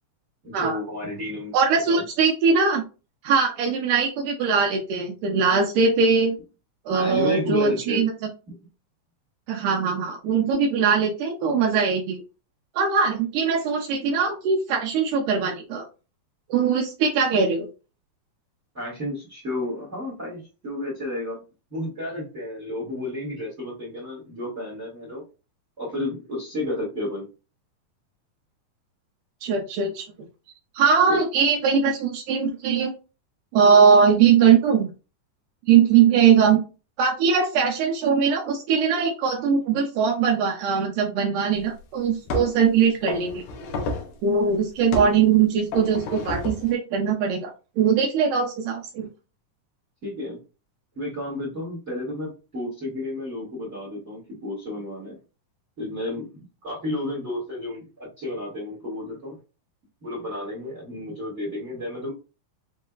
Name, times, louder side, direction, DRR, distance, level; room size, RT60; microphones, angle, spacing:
voice 1, 0.4-1.5 1.9-2.0 6.9-8.1 8.5-8.6 18.7-21.4 21.7-25.2 25.8-27.3 31.1-31.2 50.0-50.4 50.9-55.2 55.8-59.4 60.0-62.1, left 1 dB, 30° right, -4 dB, 1.4 m, -32 dB
voice 2, 1.5-2.8 3.2-6.4 6.9-8.1 9.5-12.2 12.8-15.9 16.5-17.7 29.4-30.1 30.7-32.9 33.5-34.9 35.7-36.6 37.0-43.4 44.2-49.1, right 6 dB, 75° right, 1 dB, 2.0 m, -21 dB
sound 1, 41.5-41.6 42.3-42.6 43.1-44.2 44.9-45.2 45.7-46.7, left 2 dB, 70° left, 2.1 m, -30 dB
6.3 x 2.7 x 2.3 m, 0.32 s
omnidirectional pair, 4.2 m